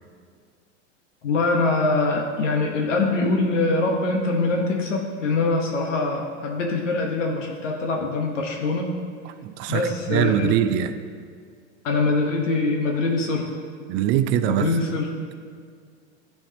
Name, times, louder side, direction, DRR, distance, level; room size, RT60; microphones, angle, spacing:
voice 1, 1.2-8.9 9.7-10.5 11.8-13.6 14.4-15.1, left 3 dB, 85° left, 1.1 m, -23 dB
voice 2, 9.3-11.0 13.9-14.7, right 10 dB, 35° right, 0.4 m, -23 dB
12.0 x 4.6 x 2.8 m
hypercardioid pair, 105°, 36 cm